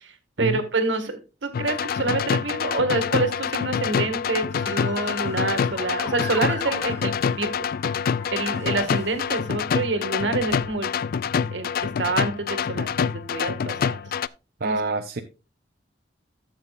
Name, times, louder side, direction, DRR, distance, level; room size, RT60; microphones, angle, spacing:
voice 1, 0.0-7.5 8.3-10.9 11.5-14.0 14.6-14.8, right 3 dB, 85° right, 1.8 m, -27 dB
sound 1, 1.5-14.3, left 6 dB, 55° left, 0.4 m, -26 dB
Motor vehicle (road) / Siren, 4.5-9.7 10.4-10.8, left 1 dB, 15° left, 1.6 m, -40 dB
voice 2, 14.6-15.2, right 3 dB, 55° right, 0.7 m, -26 dB
13.5 x 7.7 x 2.5 m
head